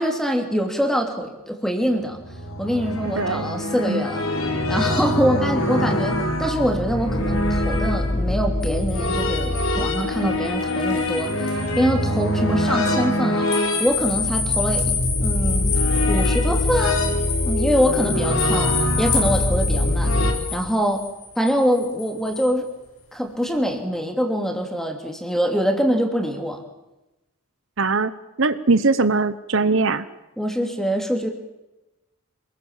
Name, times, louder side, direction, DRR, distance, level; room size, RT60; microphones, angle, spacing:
voice 1, 0.0-2.2 2.6-4.3 4.7-14.9 15.2-15.8 16.1-17.0 17.4-20.1 20.5-21.0 21.3-22.7 23.1-26.6 30.4-31.3, equal, ahead, 4 dB, 3.0 m, -24 dB
sound 1, 2.1-20.3, left 1 dB, 60° left, 4.3 m, -23 dB
voice 2, 3.0-3.5 3.9-4.0 10.2-10.5 27.8-28.1 28.4-30.0, right 3 dB, 60° right, 12 dB, 1.0 m, -21 dB
sound 2, 8.6-11.8 12.2-12.3 13.5-22.5, left 6 dB, 80° left, 6.7 m, -29 dB
27.5 x 21.5 x 7.4 m, 1.0 s
head